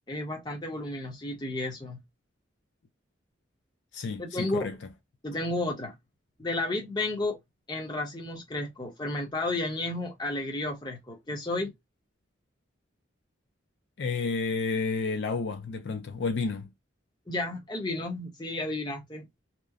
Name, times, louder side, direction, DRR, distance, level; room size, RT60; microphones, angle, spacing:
voice 1, 0.1-2.0 4.2-4.7 5.2-5.9 6.4-7.4 7.7-11.7 17.3-19.3, left 2 dB, 20° left, 0.8 m, -32 dB
voice 2, 3.9-4.8 14.0-16.7, left 4 dB, 65° left, 0.4 m, -31 dB
2.9 x 2.0 x 2.3 m
head